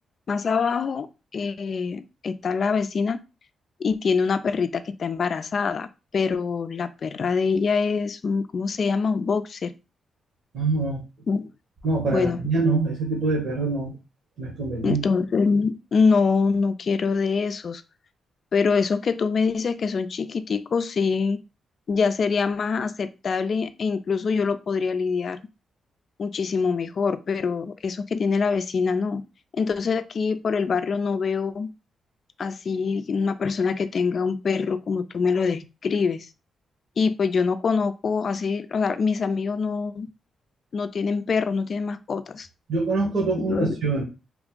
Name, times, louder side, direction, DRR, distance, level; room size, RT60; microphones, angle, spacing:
voice 1, 0.3-1.1 1.3-3.2 3.8-9.7 11.3-11.5 12.1-12.4 14.8-17.8 18.5-21.4 21.9-25.4 26.2-29.2 29.5-31.7 32.4-36.3 37.0-40.1 40.7-42.5 43.4-43.8, left 5 dB, 55° left, 0.4 m, -24 dB
voice 2, 10.5-11.0 11.8-13.9 14.4-15.0 42.7-44.0, right 3 dB, 70° right, 1.2 m, -24 dB
3.2 x 2.5 x 3.6 m
cardioid pair, 90°, 0 cm